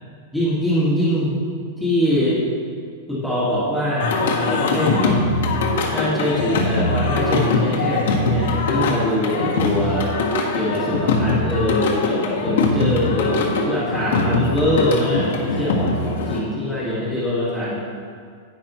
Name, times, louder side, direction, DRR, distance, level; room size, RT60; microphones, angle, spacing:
voice 1, 0.3-1.4 1.8-2.4 3.1-5.3 5.9-10.1 10.5-17.8, left 1 dB, ahead, -10 dB, 1.8 m, -23 dB
Singing, 4.0-16.4, left 3 dB, 70° left, 1.5 m, -22 dB
11.0 x 9.6 x 3.1 m, 2.2 s
supercardioid pair, 180°, 0 cm